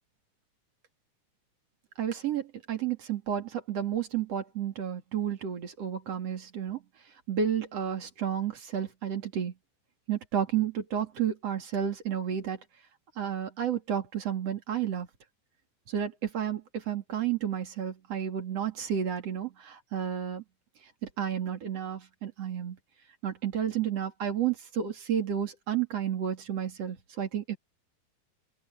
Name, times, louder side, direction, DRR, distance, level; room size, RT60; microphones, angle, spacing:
voice 1, 2.0-6.8 7.3-9.5 10.1-12.6 13.2-15.1 15.9-20.4 21.2-22.8 23.2-27.6, right 9 dB, 40° right, 3.0 m, -31 dB
open air
omnidirectional pair, 5.1 m